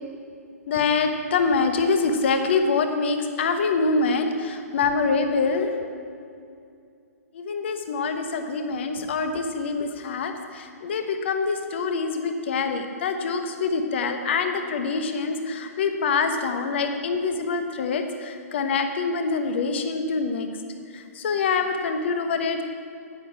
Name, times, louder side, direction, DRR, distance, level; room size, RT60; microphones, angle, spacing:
voice 1, 0.7-5.9 7.3-20.5 20.9-22.6, left 4 dB, 45° left, 7 dB, 1.0 m, -25 dB
9.3 x 8.9 x 6.0 m, 2.4 s
figure-of-eight pair, 120°, 8 cm